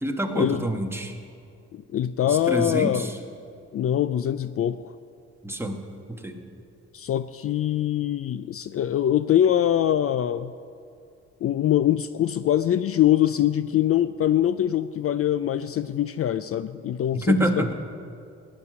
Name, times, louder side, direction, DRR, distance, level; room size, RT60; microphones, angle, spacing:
voice 1, 0.0-1.2 2.2-3.2 5.4-5.8 6.1-6.4 17.1-17.7, right 1 dB, 10° right, 3 dB, 1.6 m, -26 dB
voice 2, 1.7-3.1 3.7-4.9 6.9-10.5 11.4-17.7, left 11 dB, 50° left, 13 dB, 0.4 m, -23 dB
16.5 x 7.8 x 9.8 m, 2.4 s
cardioid pair, 90°, 30 cm